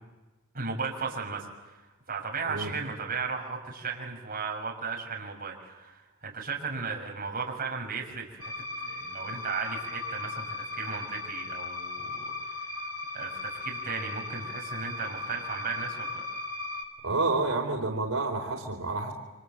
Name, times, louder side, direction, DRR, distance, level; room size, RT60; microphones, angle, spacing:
voice 1, 0.5-1.7 2.1-8.5 8.8-12.9 13.1-16.2, right 5 dB, 45° right, -1 dB, 6.8 m, -35 dB
sound 1, 8.4-16.8, left 2 dB, 70° left, 4.5 m, -37 dB
voice 2, 17.0-19.1, right 3 dB, 85° right, 2 dB, 4.1 m, -29 dB
29.5 x 26.0 x 7.7 m, 1.2 s
head